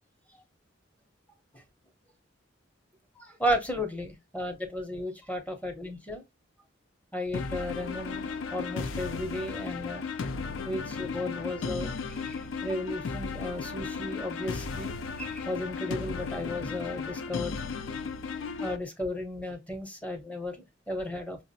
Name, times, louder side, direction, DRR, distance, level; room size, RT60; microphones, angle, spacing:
voice 1, 3.2-6.2 7.1-10.1 10.6-12.0 12.2-17.6 18.6-21.4, left 1 dB, 10° left, 0.7 m, -34 dB
sound 1, 7.3-18.8, left 5 dB, 75° left, 0.4 m, -35 dB
5.6 x 2.0 x 2.6 m
head